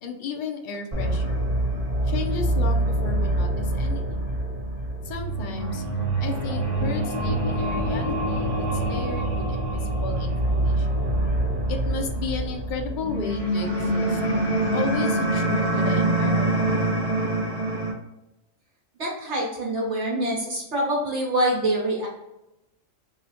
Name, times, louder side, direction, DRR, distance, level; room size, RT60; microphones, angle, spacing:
voice 1, 0.0-1.5 2.0-4.3 5.0-5.8 6.2-11.0 11.7-14.2 14.7-16.8, left 4 dB, 70° left, 4 dB, 0.4 m, -34 dB
sound 1, 0.9-17.9, right 1 dB, 35° right, 0.8 m, -25 dB
voice 2, 19.0-22.1, right 1 dB, 60° right, -3 dB, 1.0 m, -25 dB
4.7 x 2.1 x 2.8 m, 0.92 s
omnidirectional pair, 1.4 m